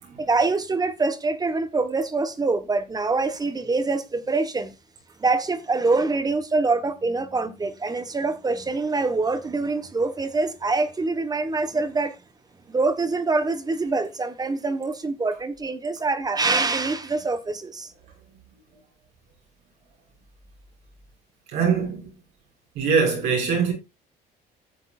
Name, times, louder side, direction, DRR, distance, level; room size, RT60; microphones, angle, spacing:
voice 1, 0.2-4.7 5.2-12.2 12.7-17.9, right 3 dB, 20° right, 1.3 m, -25 dB
voice 2, 21.5-22.1 22.7-23.7, right 6 dB, 85° right, 6.1 m, -23 dB
15.0 x 8.1 x 2.5 m
cardioid pair, 110°, 17 cm